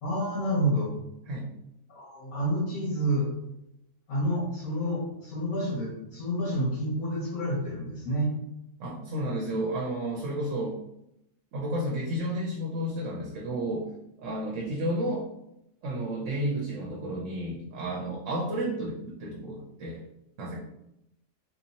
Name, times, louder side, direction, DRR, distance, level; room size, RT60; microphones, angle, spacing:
voice 1, 0.0-0.9 1.9-3.3 4.1-8.3, equal, 80° left, -9 dB, 1.8 m, -29 dB
voice 2, 8.8-10.8 11.5-13.9 14.2-15.3 15.8-20.0 20.4-20.6, right 1 dB, 70° right, -2 dB, 0.9 m, -32 dB
3.6 x 2.8 x 2.7 m, 0.82 s
omnidirectional pair, 1.4 m